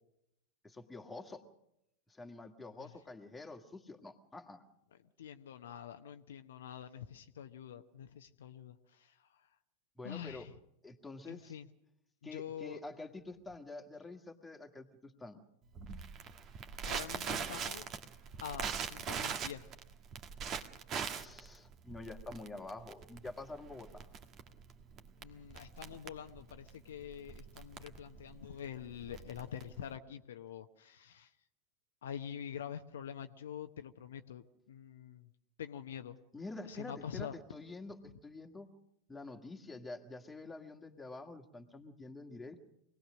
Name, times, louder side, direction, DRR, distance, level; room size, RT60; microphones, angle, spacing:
voice 1, 0.6-1.4 2.1-4.6 10.0-10.5 10.8-11.6 12.2-15.4 21.1-24.1 36.3-38.7 39.1-42.7, left 2 dB, 10° left, 3 dB, 2.0 m, -47 dB
voice 2, 5.2-9.1 10.0-10.5 11.3-11.7 12.3-12.8 16.9-17.9 18.4-19.6 25.2-31.3 32.0-35.3 35.6-36.2 36.7-37.4 38.1-38.2, left 9 dB, 65° left, 7 dB, 0.9 m, -46 dB
Crackle, 15.8-30.0, right 7 dB, 35° right, 1.5 m, -42 dB
25.0 x 19.0 x 6.3 m, 0.80 s
figure-of-eight pair, 90°, 0 cm